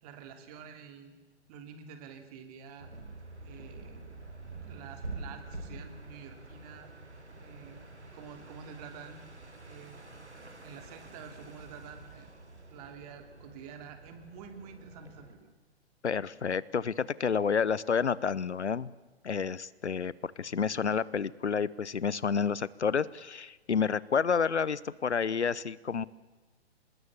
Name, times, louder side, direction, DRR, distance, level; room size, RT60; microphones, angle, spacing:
voice 1, 0.0-1.2 1.5-2.9 3.4-4.2 4.6-6.9 7.4-7.8 8.1-9.3 9.7-10.0 10.6-12.3 12.7-15.5, right 6 dB, 35° right, 7 dB, 3.1 m, -48 dB
sound 1, 2.8-15.3, right 2 dB, 90° right, 3.9 m, -47 dB
voice 2, 16.0-18.9 19.2-26.0, left 6 dB, 80° left, 21 dB, 0.9 m, -30 dB
25.5 x 20.5 x 7.3 m, 1.3 s
figure-of-eight pair, 125°, 33 cm